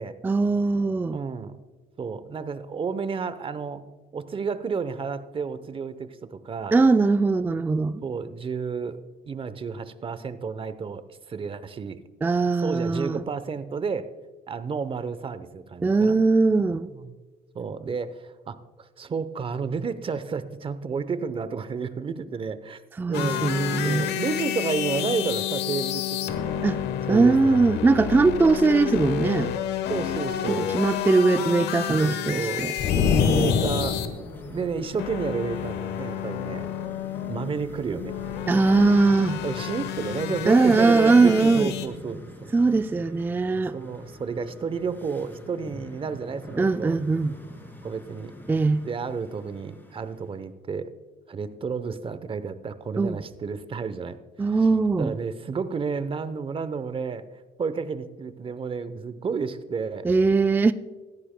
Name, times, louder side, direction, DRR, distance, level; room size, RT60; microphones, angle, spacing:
voice 1, 0.2-1.2 6.7-8.0 12.2-13.2 15.8-16.9 23.0-24.1 26.6-26.8 27.1-29.5 30.6-32.7 38.5-39.4 40.5-41.7 42.5-43.8 46.6-47.3 48.5-48.8 53.0-53.2 54.4-55.1 60.0-60.7, right 3 dB, 10° right, 0.3 m, -21 dB
voice 2, 1.1-1.6 2.0-3.8 4.1-6.8 8.0-9.0 9.2-12.0 12.6-14.1 14.5-16.2 16.7-17.2 17.5-22.8 23.1-26.6 27.1-27.7 29.9-30.7 32.0-32.7 32.9-34.0 34.5-36.7 37.3-38.1 39.4-42.2 43.7-47.0 47.8-48.3 48.8-50.9 51.3-54.2 54.4-54.7 55.0-57.2 57.6-60.1, right 5 dB, 30° right, 0.8 m, -31 dB
sound 1, 23.1-41.9, left 10 dB, 80° left, 1.1 m, -30 dB
sound 2, 32.8-34.4, left 6 dB, 60° left, 1.2 m, -23 dB
sound 3, 33.8-50.4, left 1 dB, 10° left, 2.8 m, -44 dB
15.5 x 14.0 x 2.2 m
cardioid pair, 110°, 17 cm